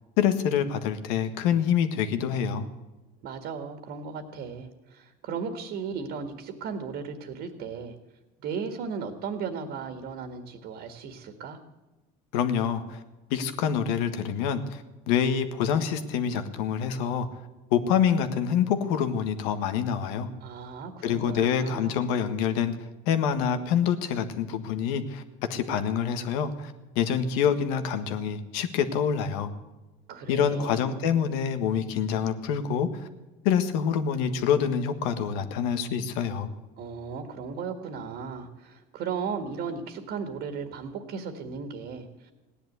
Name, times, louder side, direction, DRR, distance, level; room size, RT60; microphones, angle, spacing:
voice 1, 0.2-2.7 12.3-13.0 13.3-17.3 17.7-20.3 21.0-22.8 23.1-25.2 25.5-29.5 30.3-33.1 33.4-36.5, left 8 dB, 80° left, 9 dB, 1.6 m, -26 dB
voice 2, 3.2-8.0 8.4-11.6 20.4-22.1 30.1-30.9 36.8-42.3, right 5 dB, 60° right, 6 dB, 1.9 m, -36 dB
17.0 x 10.5 x 8.1 m, 1.1 s
supercardioid pair, 110°, 19 cm